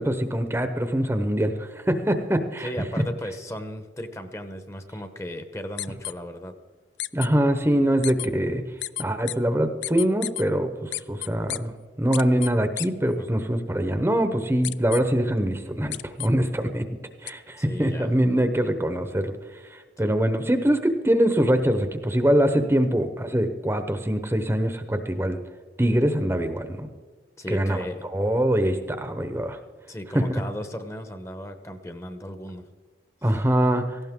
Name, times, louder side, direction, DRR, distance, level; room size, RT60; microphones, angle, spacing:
voice 1, 0.0-2.9 7.1-8.6 9.0-16.9 17.2-19.3 19.7-25.4 25.8-26.9 27.5-27.8 28.1-29.6 30.1-30.3 33.2-34.0, right 1 dB, 15° right, 8 dB, 0.8 m, -23 dB
voice 2, 2.6-6.5 13.2-13.3 17.6-18.1 27.4-28.1 29.9-32.6 33.2-33.5, equal, 15° left, 8 dB, 0.9 m, -36 dB
sound 1, 5.8-6.1 7.0-7.3 8.0-8.3 8.8-9.4 9.8-10.4 10.9-11.6 12.1-12.5 12.8-12.9 14.6-15.0 15.9-16.3 17.3-17.4, left 16 dB, 80° left, 0.4 m, -31 dB
18.0 x 15.5 x 3.7 m, 1.4 s
head